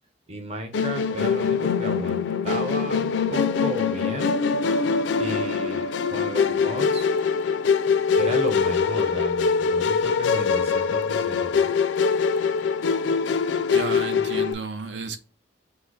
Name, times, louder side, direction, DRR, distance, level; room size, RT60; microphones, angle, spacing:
voice 1, 0.3-4.6 5.2-7.2 8.2-11.7, right 1 dB, 35° right, 0.8 m, -34 dB
Musical instrument, 0.7-14.5, left 5 dB, 70° left, 0.4 m, -23 dB
voice 2, 13.7-15.2, right 4 dB, 65° right, 0.7 m, -32 dB
5.4 x 2.0 x 4.0 m
head